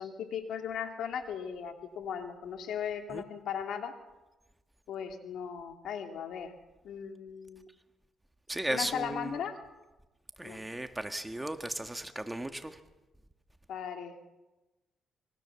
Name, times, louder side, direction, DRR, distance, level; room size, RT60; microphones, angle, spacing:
voice 1, 0.0-4.0 4.9-6.5 6.8-7.7 8.7-9.6 10.4-10.6 13.7-14.2, left 8 dB, 75° left, 5 dB, 3.0 m, -37 dB
voice 2, 8.5-9.4 10.4-12.8, right 1 dB, 10° right, 8 dB, 1.7 m, -36 dB
27.0 x 23.0 x 7.1 m, 1.1 s
cardioid pair, 90°, 0 cm